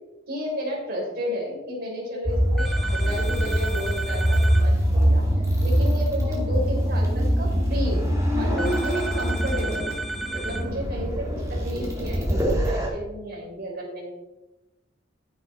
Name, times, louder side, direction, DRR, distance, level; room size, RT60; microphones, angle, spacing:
voice 1, 0.3-5.2 5.6-8.1 8.4-10.0 10.3-14.1, equal, 55° right, -2 dB, 4.1 m, -32 dB
sound 1, 2.3-12.9, equal, 15° right, 2.4 m, -23 dB
sound 2, 2.6-4.7 8.6-10.7, right 3 dB, ahead, 1.2 m, -33 dB
13.5 x 6.6 x 4.1 m, 1.0 s
head